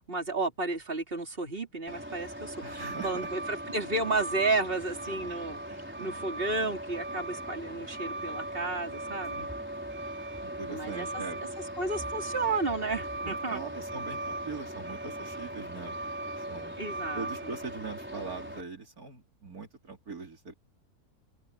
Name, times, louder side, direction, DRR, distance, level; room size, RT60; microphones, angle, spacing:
voice 1, 0.1-9.4 10.7-11.2 11.8-13.6 16.8-17.3, right 3 dB, 35° right, 3.7 m, -32 dB
Truck, 1.9-18.6, right 1 dB, 5° right, 4.8 m, -38 dB
voice 2, 2.6-3.3 5.2-5.5 6.0-6.2 9.3-9.5 10.4-11.4 13.2-16.0 16.4-16.8 17.1-20.5, right 4 dB, 70° right, 3.6 m, -42 dB
open air
omnidirectional pair, 1.6 m